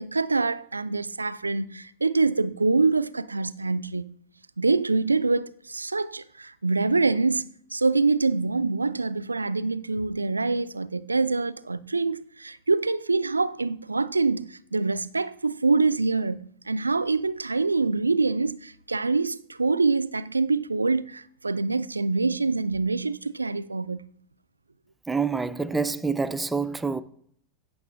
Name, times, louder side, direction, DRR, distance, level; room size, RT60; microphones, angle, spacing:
voice 1, 0.0-4.1 4.6-24.0, right 3 dB, 80° right, 0.3 m, -25 dB
voice 2, 25.1-27.0, right 4 dB, 10° right, 0.5 m, -27 dB
16.5 x 6.0 x 2.5 m
figure-of-eight pair, 90°, 0 cm